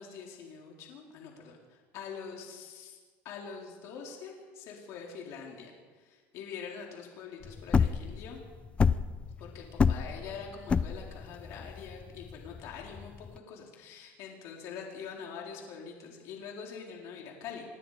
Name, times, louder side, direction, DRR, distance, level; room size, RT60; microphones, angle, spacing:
voice 1, 0.0-3.0 3.2-8.4 9.4-17.6, left 6 dB, 60° left, 0 dB, 4.2 m, -44 dB
sound 1, 7.4-13.4, left 5 dB, 20° left, 0.6 m, -28 dB
26.0 x 21.0 x 5.1 m, 1.5 s
cardioid pair, 140°, 6 cm